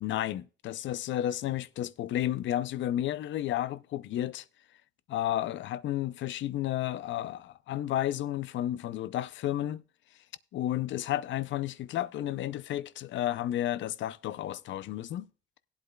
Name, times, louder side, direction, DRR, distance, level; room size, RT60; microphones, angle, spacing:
voice 1, 0.0-4.4 5.1-9.8 10.5-15.3, left 12 dB, 70° left, 0.5 m, -32 dB
18.0 x 8.2 x 2.3 m
cardioid pair, 90°, 20 cm